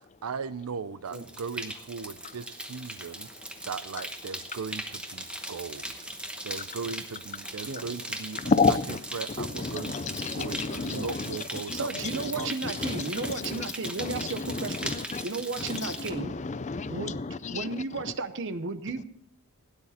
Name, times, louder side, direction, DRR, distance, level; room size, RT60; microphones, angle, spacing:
voice 1, 0.2-3.3 3.7-6.1 6.4-8.4 8.9-12.9, right 5 dB, 85° right, 0.5 m, -38 dB
sound 1, 1.1-16.1, right 1 dB, 5° right, 1.0 m, -39 dB
voice 2, 8.4-9.0 9.4-11.4 11.7-13.7 14.0-15.3 15.6-17.7 18.0-18.1, left 4 dB, 30° left, 0.5 m, -31 dB
voice 3, 11.7-14.9 15.2-16.3 16.9-17.2 17.5-19.0, right 3 dB, 55° right, 0.9 m, -34 dB
16.5 x 9.8 x 4.3 m
head